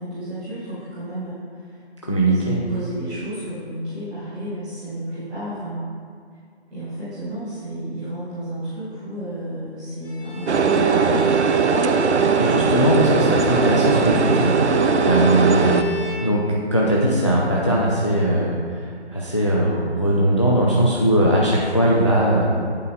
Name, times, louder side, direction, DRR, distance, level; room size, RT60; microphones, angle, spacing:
voice 1, 0.0-1.8 2.2-5.9 6.7-11.4 20.8-21.1, right 1 dB, ahead, -17 dB, 0.9 m, -32 dB
voice 2, 2.1-2.6 12.4-15.9 16.2-16.5 16.7-22.5, right 1 dB, 30° left, -5 dB, 0.5 m, -20 dB
Bowed string instrument, 10.0-16.8, left 2 dB, 55° left, 1.8 m, -34 dB
sound 1, 10.5-15.8, right 5 dB, 85° right, 0.5 m, -19 dB
8.7 x 8.5 x 2.4 m, 2.2 s
figure-of-eight pair, 155°, 33 cm